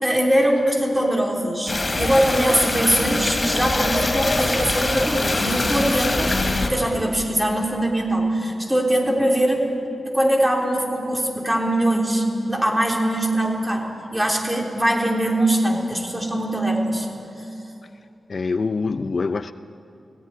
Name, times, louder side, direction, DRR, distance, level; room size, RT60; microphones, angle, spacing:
voice 1, 0.0-6.3 6.7-9.7 10.0-17.1, right 1 dB, 15° right, 0 dB, 3.4 m, -22 dB
sound 1, 1.7-6.7, left 2 dB, 30° left, 2.9 m, -23 dB
voice 2, 18.3-19.5, left 4 dB, 50° left, 11 dB, 0.5 m, -24 dB
17.5 x 17.0 x 9.8 m, 2.8 s
wide cardioid pair, 110°, 0 cm